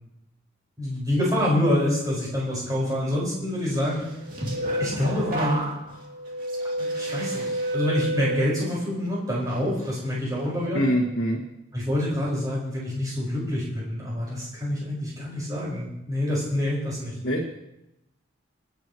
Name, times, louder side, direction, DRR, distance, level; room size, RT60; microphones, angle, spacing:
voice 1, 0.8-4.0 4.8-5.6 6.8-10.8 11.7-17.1, left 1 dB, 20° right, -6 dB, 5.1 m, -26 dB
sound 1, 4.0-9.0 9.5-9.9, right 1 dB, 45° right, 2.6 m, -30 dB
voice 2, 10.7-11.4 17.2-17.5, equal, 55° left, -2 dB, 1.8 m, -24 dB
27.5 x 9.3 x 3.1 m, 0.86 s
head